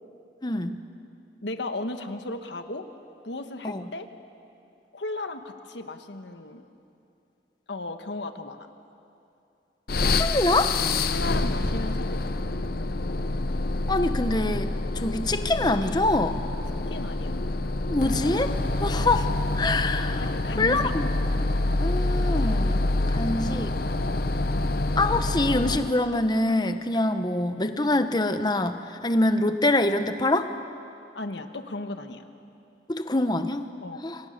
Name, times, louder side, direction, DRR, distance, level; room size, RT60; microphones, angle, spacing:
voice 1, 0.4-0.8 3.6-3.9 10.0-10.8 13.9-16.4 17.9-19.3 19.6-20.3 20.6-21.1 21.8-22.9 23.1-23.8 25.0-30.5 32.9-33.7 34.0-34.2, left 2 dB, 25° left, 9 dB, 1.0 m, -25 dB
voice 2, 1.4-2.9 3.2-4.1 4.9-6.6 7.7-8.7 11.1-12.3 16.9-17.3 20.2-20.9 24.0-24.3 31.1-32.3 33.8-34.1, left 2 dB, 80° left, 7 dB, 1.4 m, -35 dB
sound 1, 9.9-26.0, left 2 dB, 55° left, 0.8 m, -27 dB
28.5 x 24.0 x 6.6 m, 2.6 s
head